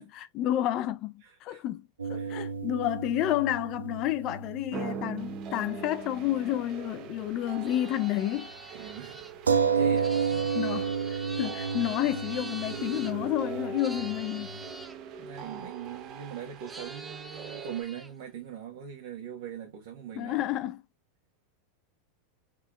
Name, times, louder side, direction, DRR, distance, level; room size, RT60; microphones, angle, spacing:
voice 1, 0.0-8.8 10.5-14.6 20.2-20.8, left 13 dB, 45° left, 0.4 m, -30 dB
voice 2, 1.2-1.6 2.1-2.5 8.7-9.3 9.7-10.7 15.2-20.5, right 8 dB, 65° right, 1.4 m, -42 dB
sound 1, 2.0-5.9 6.1-6.2 9.5-14.7, right 6 dB, 85° right, 0.5 m, -31 dB
sound 2, 4.7-17.8, right 6 dB, 45° right, 0.9 m, -41 dB
sound 3, 7.6-13.1 13.8-15.0 16.7-18.1, right 2 dB, 10° right, 0.7 m, -44 dB
3.7 x 3.5 x 2.4 m
hypercardioid pair, 95°, 0 cm